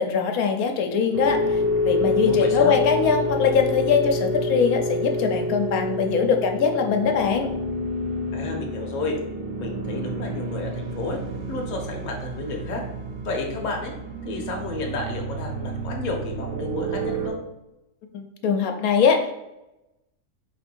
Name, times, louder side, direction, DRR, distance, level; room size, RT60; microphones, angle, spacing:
voice 1, 0.0-7.5 18.1-19.4, left 6 dB, 85° left, 4 dB, 1.1 m, -22 dB
sound 1, 1.1-17.3, left 1 dB, 60° right, 0.6 m, -28 dB
voice 2, 2.2-2.8 8.3-9.2 9.6-11.2 11.5-12.8 13.2-13.9 14.2-17.4, left 3 dB, 40° left, 1 dB, 0.8 m, -31 dB
4.5 x 2.6 x 4.4 m, 0.94 s
omnidirectional pair, 1.5 m